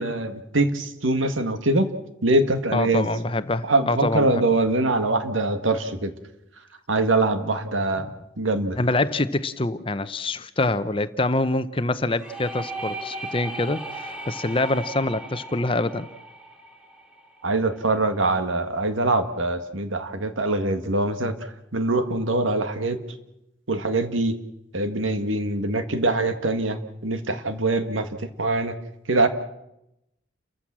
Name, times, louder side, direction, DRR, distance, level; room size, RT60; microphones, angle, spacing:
voice 1, 0.0-1.9 2.2-3.1 3.6-6.1 6.9-8.8 17.4-21.3 21.7-23.0 23.7-24.4 24.7-28.7 29.1-29.3, right 2 dB, 90° right, 8 dB, 1.8 m, -23 dB
voice 2, 2.7-4.4 8.8-16.1, left 2 dB, 25° left, 13 dB, 0.7 m, -25 dB
sound 1, 12.2-17.8, right 2 dB, 5° right, 3.5 m, -37 dB
30.0 x 14.5 x 7.6 m, 0.86 s
head